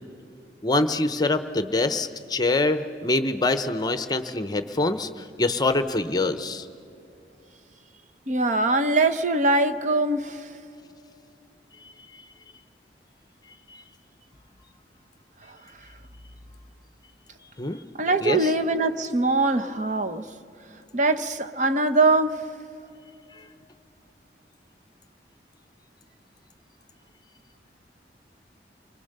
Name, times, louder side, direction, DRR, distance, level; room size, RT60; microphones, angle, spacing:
voice 1, 0.6-6.7 11.8-12.2 13.7-13.8 17.6-17.8 18.2-18.5, left 2 dB, 25° left, 10 dB, 0.8 m, -25 dB
voice 2, 8.3-10.4 18.0-20.2 20.9-22.4, right 2 dB, 45° right, 8 dB, 0.9 m, -22 dB
30.0 x 22.5 x 6.7 m, 2.7 s
head